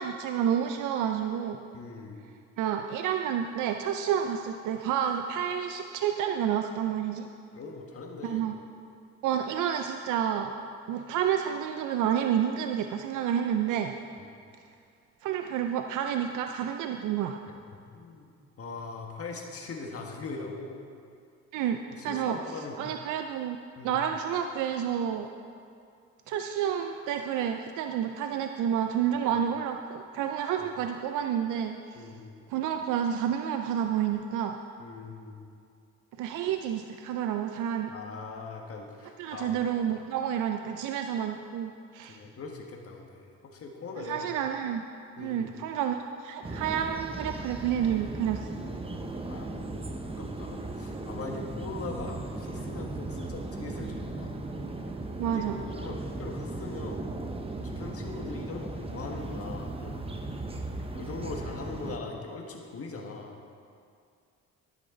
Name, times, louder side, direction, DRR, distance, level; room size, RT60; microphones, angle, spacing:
voice 1, 0.0-1.6 2.6-7.3 8.2-8.6 9.2-10.5 10.9-13.9 15.2-17.4 21.5-22.4 22.8-23.6 23.8-25.3 26.3-32.1 32.5-34.6 36.2-37.9 39.2-42.2 44.0-44.8 45.2-48.5 55.2-55.6, right 9 dB, 85° right, 6 dB, 0.6 m, -29 dB
voice 2, 1.7-2.2 7.5-8.4 14.2-14.3 17.5-17.6 17.9-18.3 18.6-20.7 21.9-22.8 23.8-24.0 30.6-30.7 31.9-32.3 34.8-35.4 37.9-39.9 42.0-44.2 45.2-45.5 48.5-49.5 50.2-54.4 55.2-57.0 57.6-60.1 60.8-63.4, left 3 dB, 50° left, 1 dB, 1.7 m, -41 dB
sound 1, 46.4-62.0, right 2 dB, 20° right, 0.9 m, -37 dB
12.0 x 10.5 x 3.9 m, 2.4 s
cardioid pair, 90°, 30 cm